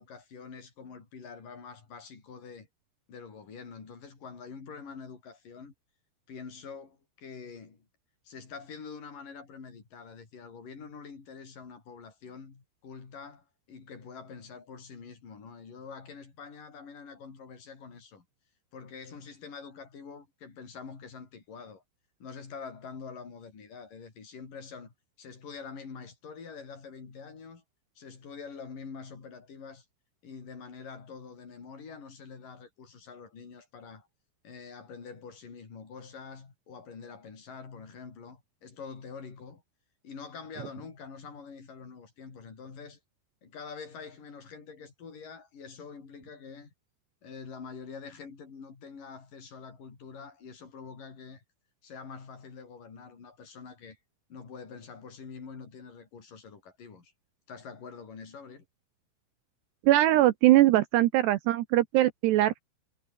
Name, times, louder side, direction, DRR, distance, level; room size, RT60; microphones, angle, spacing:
voice 1, 0.0-2.7 3.1-5.7 6.3-7.9 8.2-18.2 18.7-21.8 22.2-27.6 28.0-29.9 30.2-34.1 34.4-39.6 40.0-43.0 43.4-46.7 47.2-51.4 51.8-54.0 54.3-57.1 57.5-58.7, left 5 dB, 45° left, 6.3 m, -45 dB
voice 2, 59.8-62.6, right 15 dB, 75° right, 2.5 m, -21 dB
omnidirectional pair, 5.8 m